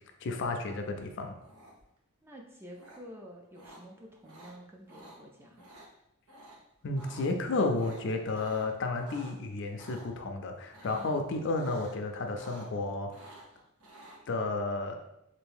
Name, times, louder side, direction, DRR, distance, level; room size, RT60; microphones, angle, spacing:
voice 1, 0.2-1.3 6.8-13.1 14.3-15.0, left 3 dB, 55° left, 5 dB, 0.4 m, -32 dB
sound 1, 1.4-2.0 2.8-3.0 3.5-3.8 4.2-4.5 4.9-5.2 5.5-5.9 6.3-6.6 6.8-7.3 7.7-9.3 9.8-10.0 10.7-11.2 11.5-12.0 12.2-12.8 13.1-14.2, right 1 dB, 90° right, 0.9 m, -51 dB
voice 2, 2.2-5.6 10.9-11.2, equal, 10° right, 0 dB, 0.4 m, -49 dB
3.4 x 2.6 x 3.5 m, 0.84 s
head